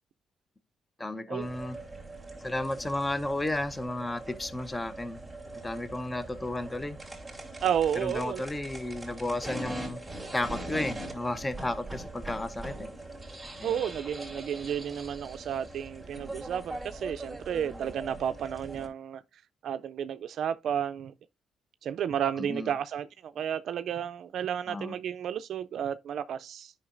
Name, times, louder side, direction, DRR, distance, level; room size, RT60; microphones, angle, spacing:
voice 1, 1.0-1.8 2.4-5.2 5.6-7.0 8.0-10.0 10.3-12.9 13.6-13.8 22.4-22.7 24.7-25.0, left 1 dB, 20° left, 0.7 m, -33 dB
sound 1, 1.4-18.9, right 1 dB, 5° right, 2.5 m, -42 dB
voice 2, 7.6-8.4 13.6-19.2 19.6-21.1 21.8-26.7, right 9 dB, 70° right, 0.3 m, -32 dB
9.6 x 5.5 x 2.5 m
cardioid pair, 90°, 0 cm